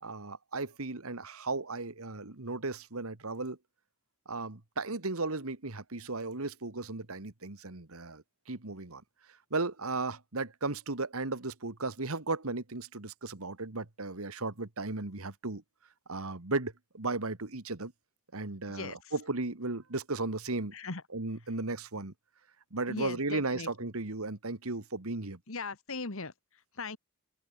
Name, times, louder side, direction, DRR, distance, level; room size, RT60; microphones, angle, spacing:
voice 1, 0.0-3.6 4.3-9.0 9.5-15.6 16.1-17.9 18.3-20.7 21.1-22.1 22.7-25.4, right 3 dB, 75° right, 1.9 m, -35 dB
voice 2, 18.7-19.1 20.7-21.0 21.5-21.6 22.9-23.7 25.5-27.0, left 3 dB, 65° left, 1.8 m, -39 dB
head